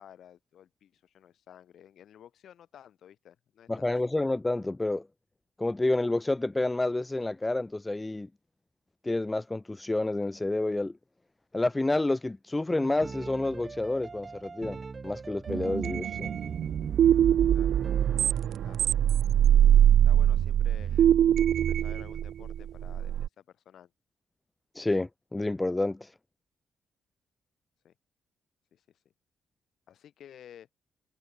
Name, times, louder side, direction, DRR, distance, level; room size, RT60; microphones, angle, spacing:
voice 1, 0.0-3.9 17.5-17.8 18.6-18.9 20.0-21.1 21.5-23.9 27.8-27.9 28.7-29.0 29.9-30.7, left 10 dB, 65° left, 6.5 m, -53 dB
voice 2, 3.7-5.1 5.6-8.3 9.0-10.9 11.5-14.8 15.0-16.3 24.7-26.1, left 2 dB, 15° left, 0.6 m, -29 dB
sound 1, 12.7-18.8, right 4 dB, 30° right, 3.4 m, -42 dB
sound 2, 15.5-23.3, right 10 dB, 70° right, 0.5 m, -23 dB
cardioid pair, 90°, 0 cm